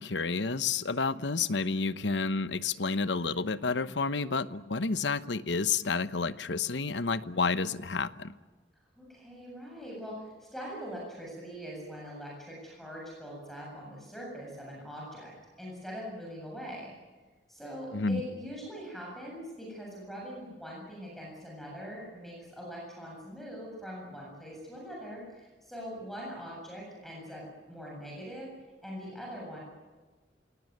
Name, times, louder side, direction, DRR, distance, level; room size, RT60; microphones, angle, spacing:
voice 1, 0.0-8.3 17.9-18.2, left 4 dB, 85° left, 13 dB, 1.0 m, -30 dB
voice 2, 9.0-16.9 17.5-28.5 28.8-29.6, equal, ahead, -2 dB, 7.6 m, -42 dB
28.0 x 18.0 x 9.5 m, 1.3 s
head